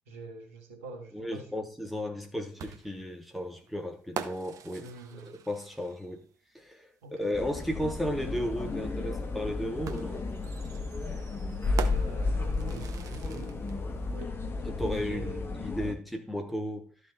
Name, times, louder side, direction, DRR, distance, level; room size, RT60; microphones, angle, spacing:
voice 1, 0.1-1.7 4.8-5.3 7.0-7.2 11.6-13.6 14.1-14.3 14.9-15.5, right 3 dB, 75° right, 1.8 m, -44 dB
voice 2, 1.1-4.9 5.2-6.2 6.5-6.9 7.2-10.2 14.6-16.9, left 1 dB, ahead, 2.4 m, -34 dB
sound 1, 2.6-6.2 7.7-7.8 9.9-13.8, right 8 dB, 50° right, 0.9 m, -43 dB
sound 2, 7.3-15.9, left 3 dB, 30° left, 1.7 m, -33 dB
13.0 x 4.6 x 4.3 m
figure-of-eight pair, 45°, 7 cm